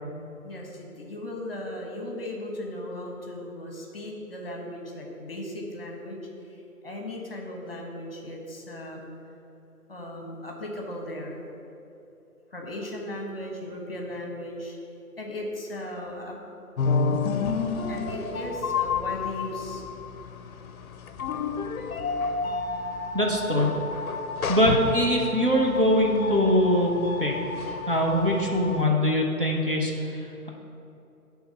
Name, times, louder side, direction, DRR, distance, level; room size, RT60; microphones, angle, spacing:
voice 1, 0.4-6.2 6.5-6.6 6.8-9.1 9.9-11.5 12.5-14.8 15.2-16.6 17.9-19.8, left 1 dB, 40° left, 0 dB, 1.0 m, -37 dB
sound 1, 16.8-28.9, left 4 dB, 65° left, 0.6 m, -30 dB
voice 2, 23.1-23.7 24.5-26.9 27.2-30.5, equal, 35° right, -2 dB, 0.6 m, -23 dB
7.9 x 3.5 x 5.4 m, 2.8 s
figure-of-eight pair, 165°, 45 cm